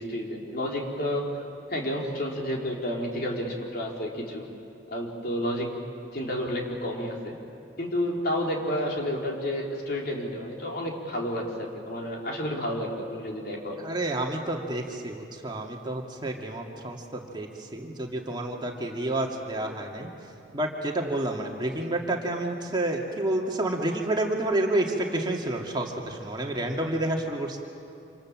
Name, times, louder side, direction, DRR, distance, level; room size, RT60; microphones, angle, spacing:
voice 1, 0.0-1.4 1.7-4.5 4.9-5.7 6.1-7.3 7.8-13.8 18.1-18.2, equal, 55° left, -1 dB, 4.0 m, -30 dB
voice 2, 13.8-20.1 20.5-27.6, right 1 dB, 25° right, 0 dB, 2.3 m, -29 dB
27.0 x 27.0 x 7.6 m, 2.7 s
head